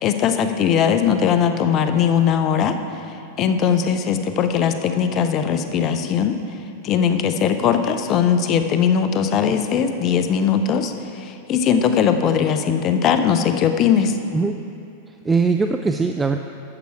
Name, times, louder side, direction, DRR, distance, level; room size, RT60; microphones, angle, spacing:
voice 1, 0.0-6.3 6.8-14.2, left 7 dB, 40° left, 8 dB, 0.7 m, -20 dB
voice 2, 14.3-14.6 15.1-16.4, right 4 dB, 15° right, 6 dB, 0.3 m, -21 dB
11.0 x 6.8 x 4.7 m, 2.7 s
figure-of-eight pair, 95°, 0 cm